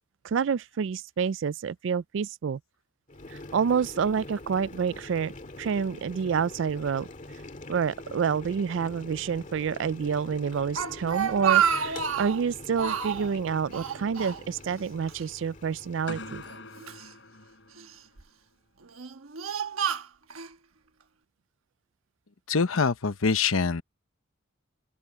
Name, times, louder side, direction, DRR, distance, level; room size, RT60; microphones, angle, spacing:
voice 1, 0.2-2.6 3.5-5.3 5.6-7.1 7.7-16.4, right 6 dB, 60° right, 0.3 m, -28 dB
Boiling, 3.1-16.6, left 2 dB, 35° left, 2.0 m, -44 dB
Speech, 10.5-12.4 12.8-13.3 13.7-14.8 15.1-15.2 16.1-17.1 17.8-18.2 18.8-20.5, right 8 dB, 85° right, 1.2 m, -29 dB
sound 1, 16.1-18.2, left 3 dB, 60° left, 7.5 m, -43 dB
voice 2, 22.5-23.8, left 5 dB, 80° left, 0.9 m, -24 dB
open air
head